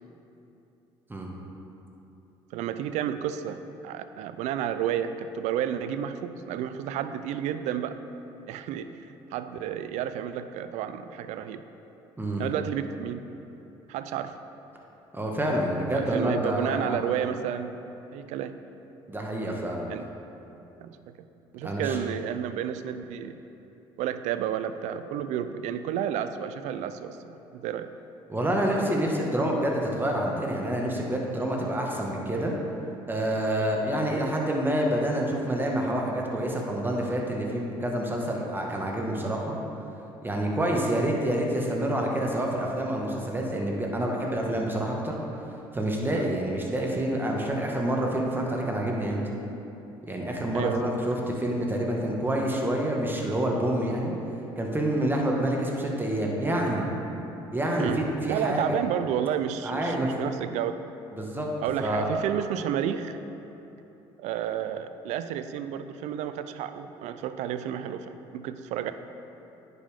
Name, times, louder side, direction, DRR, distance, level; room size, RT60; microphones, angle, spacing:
voice 1, 2.5-8.0 8.5-11.6 12.4-13.2 13.9-14.3 15.9-17.8 18.1-18.6 19.9-20.1 20.8-21.1 21.5-23.4 24.0-27.9 46.1-46.3 50.5-50.9 57.8-60.8 61.6-63.2 64.2-68.9, right 9 dB, 70° right, 11 dB, 0.4 m, -31 dB
voice 2, 15.1-17.0 19.1-19.9 21.6-22.0 28.3-32.5 33.1-39.5 40.2-45.2 45.7-49.2 50.0-54.1 54.6-56.9 57.5-58.8 59.6-60.1 61.1-61.5 61.8-62.1, right 1 dB, 15° right, -1 dB, 1.4 m, -27 dB
9.9 x 5.3 x 3.5 m, 3.0 s
hypercardioid pair, 70°, 13 cm